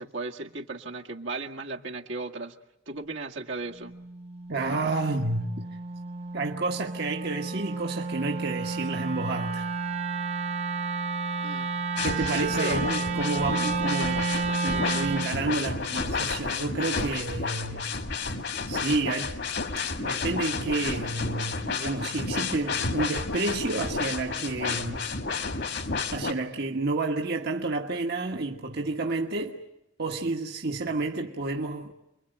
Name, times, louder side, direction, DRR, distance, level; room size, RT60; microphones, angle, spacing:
voice 1, 0.0-2.6 2.9-4.0 11.4-11.7 12.2-12.9, right 3 dB, 70° right, 1.9 m, -35 dB
Wind instrument woodwind instrument, 3.8-15.4, right 3 dB, 35° right, 1.1 m, -31 dB
voice 2, 4.5-5.6 6.3-9.7 12.0-14.3 14.6-17.9 18.7-19.4 20.0-25.0 26.1-29.6 30.0-31.9, right 3 dB, 55° right, 1.5 m, -30 dB
sound 1, 12.0-26.3, left 4 dB, 60° left, 1.9 m, -31 dB
28.5 x 22.5 x 9.2 m
head